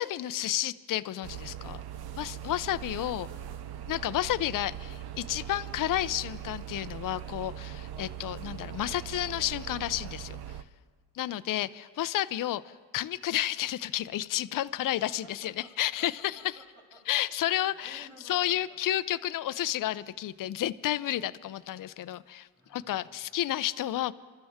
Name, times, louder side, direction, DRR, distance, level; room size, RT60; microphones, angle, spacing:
voice 1, 0.0-1.8 2.2-3.3 3.9-10.4 11.1-16.6 17.1-24.1, left 13 dB, 45° left, 13 dB, 0.6 m, -31 dB
sound 1, 1.2-10.6, right 10 dB, 55° right, 0.8 m, -41 dB
voice 2, 3.2-3.9 11.2-11.4 15.2-15.7 16.0-17.4 17.7-18.8 22.5-23.3, right 1 dB, 5° right, -7 dB, 6.0 m, -57 dB
27.0 x 12.5 x 3.6 m, 1.5 s
supercardioid pair, 70°, 47 cm